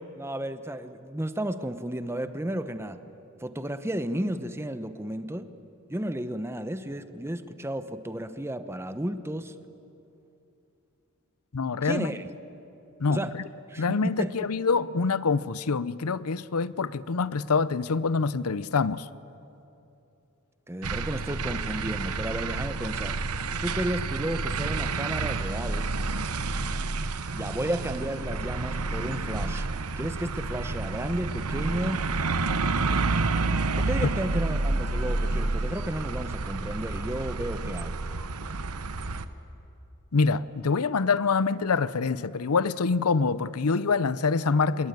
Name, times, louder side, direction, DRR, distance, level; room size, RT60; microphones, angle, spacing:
voice 1, 0.0-3.0 3.4-5.5 5.9-9.5 11.8-12.3 13.1-13.3 13.7-14.3 20.7-23.2 23.6-25.9 27.3-29.7 30.0-32.1 33.8-37.9, right 1 dB, 10° right, 1.0 m, -33 dB
voice 2, 11.5-12.2 13.0-13.4 13.8-19.1 40.1-44.9, left 4 dB, 80° left, 0.7 m, -25 dB
sound 1, 20.8-39.3, right 3 dB, 85° right, 1.1 m, -29 dB
26.0 x 21.5 x 9.3 m
head